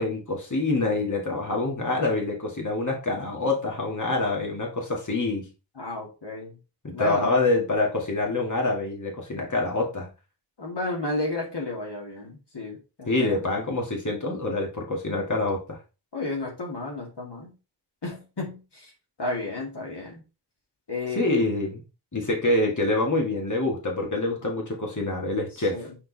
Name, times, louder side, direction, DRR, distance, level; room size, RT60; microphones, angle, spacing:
voice 1, 0.0-5.5 7.0-10.1 13.1-15.8 21.2-21.8 22.1-25.8, left 2 dB, 45° left, -1 dB, 2.4 m, -26 dB
voice 2, 5.7-6.6 6.9-7.5 10.6-13.6 16.1-17.5 18.0-18.9 19.2-20.2 20.9-21.3 25.5-26.0, left 2 dB, 70° left, -1 dB, 2.4 m, -33 dB
6.5 x 4.4 x 4.2 m, 0.29 s
wide cardioid pair, 55°, 43 cm